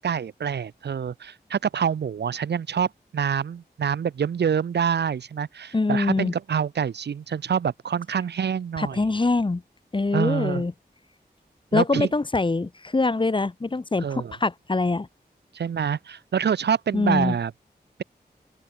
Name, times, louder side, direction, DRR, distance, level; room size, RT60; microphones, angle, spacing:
voice 1, 0.0-9.0 10.1-10.6 11.7-12.1 14.0-14.3 15.5-17.5, right 7 dB, 90° right, 0.6 m, -26 dB
voice 2, 5.7-6.3 8.8-9.6 9.9-10.7 11.7-15.1 16.9-17.4, left 3 dB, 30° left, 0.9 m, -24 dB
open air
wide cardioid pair, 80°, 17 cm